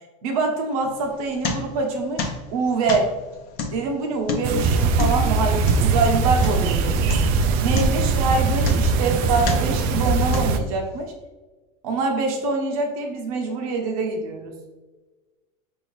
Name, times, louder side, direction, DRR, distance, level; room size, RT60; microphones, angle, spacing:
voice 1, 0.2-3.1 3.7-7.1 7.6-11.1 11.8-14.5, right 3 dB, 80° right, 2 dB, 1.0 m, -25 dB
sound 1, 0.8-1.9 2.2-6.8 7.1-7.4 7.7-9.1 9.4-9.9 10.3-10.9, left 4 dB, 55° left, 0.8 m, -30 dB
sound 2, 4.4-10.6, right 4 dB, 55° right, 0.4 m, -21 dB
5.1 x 2.7 x 3.1 m, 1.2 s
supercardioid pair, 135°, 18 cm